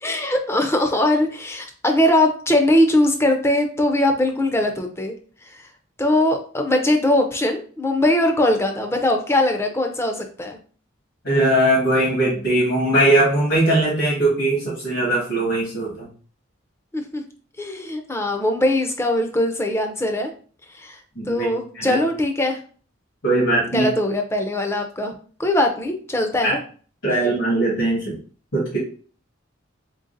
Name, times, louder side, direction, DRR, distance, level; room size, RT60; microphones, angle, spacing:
voice 1, 0.0-5.1 5.5-5.7 6.0-10.6 16.9-17.2 17.6-20.3 20.7-21.0 21.3-22.6 23.7-25.1 25.4-26.6, left 1 dB, 15° left, 4 dB, 0.5 m, -21 dB
voice 2, 11.2-16.1 21.1-21.5 21.7-22.0 23.2-23.9 26.4-26.6 27.0-28.2 28.5-28.8, right 1 dB, 65° left, -7 dB, 1.6 m, -20 dB
3.8 x 3.6 x 2.6 m, 0.42 s
head